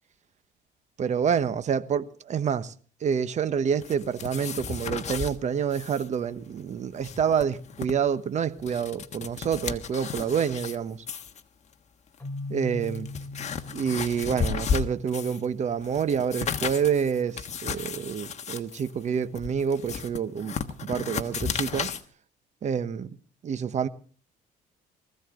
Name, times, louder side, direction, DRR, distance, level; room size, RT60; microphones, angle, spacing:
voice 1, 1.0-2.7 3.0-11.0 12.5-13.1 13.7-20.5 20.8-21.9 22.6-23.1 23.4-23.9, right 7 dB, 45° right, 1.1 m, -27 dB
sound 1, 3.8-5.3 5.7-6.1 6.3-6.4 6.8-7.9 8.4-10.8 11.1-11.4 12.2-12.3 12.8-15.5 15.8-22.0, left 6 dB, 45° left, 1.4 m, -33 dB
Keyboard (musical), 12.2-15.1, left 2 dB, 10° left, 2.7 m, -39 dB
20.0 x 15.0 x 3.8 m
cardioid pair, 110°, 17 cm